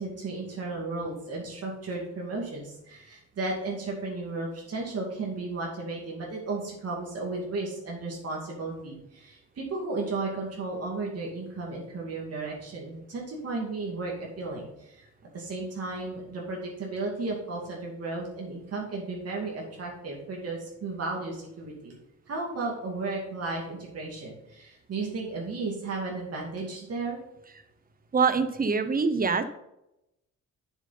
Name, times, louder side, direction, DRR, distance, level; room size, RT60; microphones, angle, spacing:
voice 1, 0.0-15.1 15.3-21.9 22.3-27.2, right 3 dB, 55° right, -2 dB, 2.4 m, -34 dB
voice 2, 28.1-29.4, right 5 dB, 30° right, 11 dB, 0.9 m, -24 dB
7.6 x 7.2 x 3.9 m, 0.86 s
cardioid pair, 90°, 30 cm